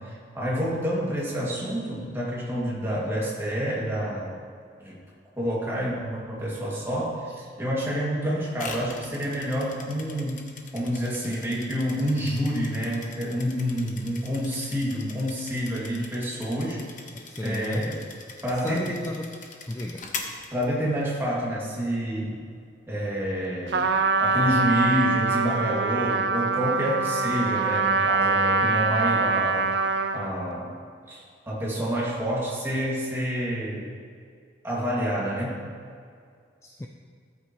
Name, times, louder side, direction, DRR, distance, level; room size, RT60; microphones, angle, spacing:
voice 1, 0.0-4.3 4.8-4.9 5.4-10.5 10.7-16.8 17.4-18.0 18.4-19.0 20.5-22.4 22.9-23.9 24.2-29.7 30.1-30.7 31.1-33.9 34.6-35.6, equal, 15° right, -6 dB, 2.2 m, -28 dB
sound 1, 8.5-21.2, left 5 dB, 40° left, 0.9 m, -42 dB
voice 2, 17.1-17.9 18.6-19.4 19.7-20.1 36.6-36.9, left 1 dB, 15° left, 2 dB, 0.4 m, -34 dB
Trumpet, 23.7-30.3, right 3 dB, 60° right, 0.5 m, -24 dB
13.5 x 8.5 x 3.1 m, 2.2 s
head